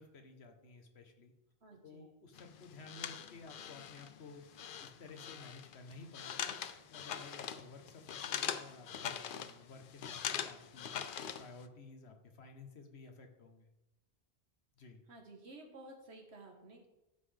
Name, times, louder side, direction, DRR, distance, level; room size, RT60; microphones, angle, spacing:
voice 1, 0.0-1.3 1.8-4.4 4.8-11.0 11.4-13.7 14.8-15.0, left 3 dB, 80° left, 5 dB, 1.3 m, -54 dB
voice 2, 1.6-2.1 15.1-16.9, right 2 dB, 85° right, 1 dB, 1.7 m, -53 dB
sound 1, 2.4-11.6, left 8 dB, 60° left, 0.7 m, -42 dB
13.5 x 5.7 x 3.4 m, 0.97 s
omnidirectional pair, 1.1 m